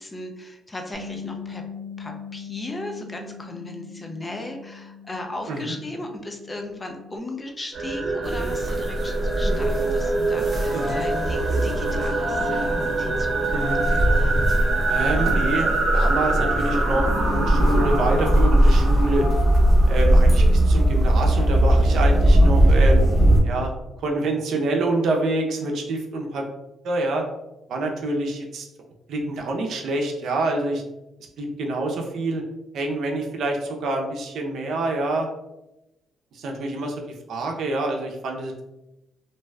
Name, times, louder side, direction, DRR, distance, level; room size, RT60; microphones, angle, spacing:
voice 1, 0.0-1.6 2.0-13.9, left 1 dB, 20° left, 3 dB, 0.5 m, -36 dB
Bass guitar, 0.9-7.2, left 6 dB, 35° left, 0.8 m, -40 dB
sound 1, 7.7-20.8, right 3 dB, 50° right, 1.0 m, -26 dB
sound 2, 8.2-23.4, right 1 dB, 25° right, 0.9 m, -20 dB
voice 2, 14.9-19.3 19.9-23.1 23.4-23.7 24.0-26.4 26.8-27.2 27.7-28.7 29.1-30.8 31.4-32.4 32.7-35.3 36.3-36.9 37.3-38.5, right 2 dB, 70° right, 2 dB, 0.5 m, -26 dB
2.6 x 2.2 x 3.2 m, 0.95 s
cardioid pair, 90°, 0 cm